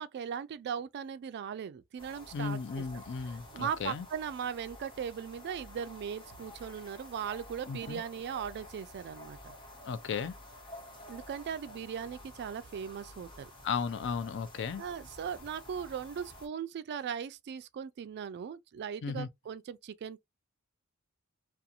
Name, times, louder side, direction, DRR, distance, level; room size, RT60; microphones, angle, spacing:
voice 1, 0.0-2.8 3.5-9.5 11.1-13.5 14.8-20.2, right 7 dB, 50° right, 0.3 m, -38 dB
sound 1, 2.0-16.5, left 1 dB, 25° left, 0.8 m, -51 dB
voice 2, 2.3-4.0 7.7-8.0 9.8-10.3 13.6-14.8 19.0-19.3, left 5 dB, 55° left, 0.4 m, -35 dB
2.5 x 2.3 x 2.7 m
head